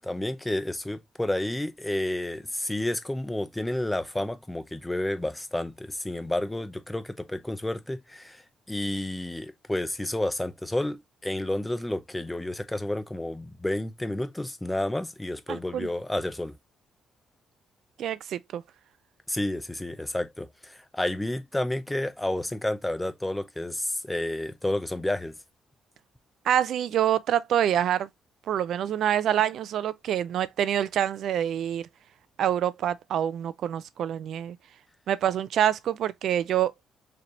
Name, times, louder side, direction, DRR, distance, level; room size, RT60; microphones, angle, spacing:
voice 1, 0.0-8.4 8.7-16.6 19.3-25.3, left 1 dB, 10° left, 0.6 m, -30 dB
voice 2, 15.5-15.9 18.0-18.6 26.4-28.1 28.5-31.9 32.4-34.6 35.1-36.7, right 10 dB, 70° right, 0.3 m, -26 dB
4.1 x 3.2 x 2.5 m
cardioid pair, 90°, 0 cm